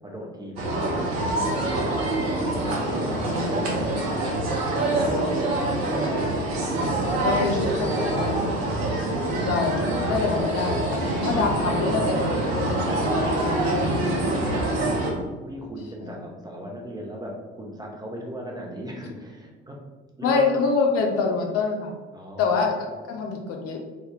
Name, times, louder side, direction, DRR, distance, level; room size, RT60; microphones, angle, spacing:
voice 1, 0.0-1.5 1.8-3.8 4.4-5.2 5.7-7.2 14.6-19.8 20.2-20.5 22.1-22.7, equal, 10° right, -2 dB, 0.5 m, -38 dB
sound 1, 0.6-15.1, right 2 dB, 65° right, 0.8 m, -25 dB
voice 2, 2.9-3.8 7.2-8.4 9.4-9.8 10.1-14.1 16.0-16.2 20.2-21.9 22.4-23.8, left 4 dB, 45° left, 2 dB, 0.6 m, -26 dB
3.3 x 2.2 x 3.3 m, 1.3 s
figure-of-eight pair, 55°, 34 cm